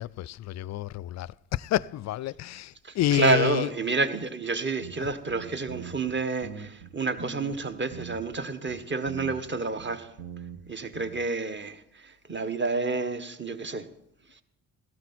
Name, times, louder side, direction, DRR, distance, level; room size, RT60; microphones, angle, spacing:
voice 1, 0.0-3.7 5.0-5.1, left 14 dB, 40° left, 0.4 m, -29 dB
voice 2, 2.8-10.1 10.7-13.8, right 3 dB, 25° right, 1.4 m, -29 dB
sound 1, 4.8-5.0 5.3-6.1 6.4-7.6 7.9-8.4 8.7-10.6 10.9-11.2, right 7 dB, 60° right, 1.8 m, -42 dB
16.5 x 13.5 x 4.4 m
hypercardioid pair, 50°, 44 cm